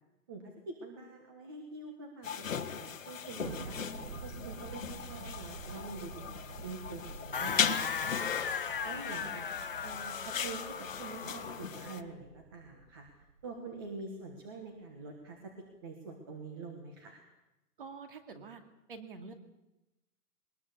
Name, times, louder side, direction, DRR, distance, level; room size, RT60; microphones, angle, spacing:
voice 1, 0.3-3.8 4.2-9.4 9.8-13.1 13.4-17.2, right 3 dB, 15° right, 3 dB, 1.3 m, -46 dB
sound 1, 2.2-12.0, left 7 dB, 55° left, 1.5 m, -38 dB
Thunder, 3.4-14.1, right 5 dB, 60° right, 1.5 m, -49 dB
sound 2, 7.3-11.7, left 7 dB, 35° left, 0.9 m, -37 dB
voice 2, 9.2-9.7 17.8-18.6 18.9-19.3, right 4 dB, 35° right, 7 dB, 2.4 m, -47 dB
21.0 x 19.5 x 8.2 m, 0.96 s
hypercardioid pair, 180°, 46 cm